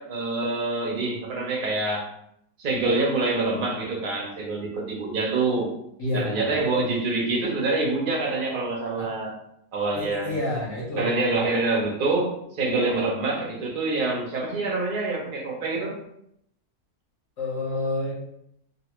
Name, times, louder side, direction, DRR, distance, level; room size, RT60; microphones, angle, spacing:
voice 1, 0.0-2.1 2.6-5.7 6.1-9.4 9.7-10.3 11.0-16.0, right 3 dB, 50° right, -1 dB, 0.6 m, -26 dB
voice 2, 6.0-6.6 9.0-9.1 9.9-11.2 12.6-13.0 17.4-18.1, left 1 dB, 55° left, -8 dB, 1.2 m, -29 dB
3.2 x 2.5 x 2.9 m, 0.77 s
omnidirectional pair, 1.6 m